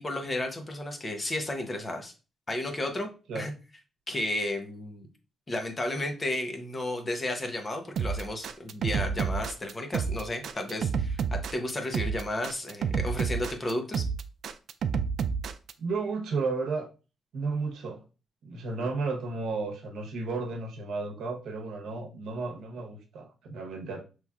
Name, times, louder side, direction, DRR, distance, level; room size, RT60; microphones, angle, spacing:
voice 1, 0.0-2.1 2.5-3.1 3.3-3.5 4.1-5.1 5.5-14.0, left 1 dB, 25° left, 4 dB, 0.7 m, -33 dB
sound 1, 8.0-15.7, right 6 dB, 65° right, 0.3 m, -30 dB
voice 2, 15.8-16.9 17.3-18.0 18.4-24.0, right 4 dB, 80° right, 2 dB, 0.9 m, -33 dB
5.6 x 3.1 x 2.3 m, 0.33 s
cardioid pair, 135°, 0 cm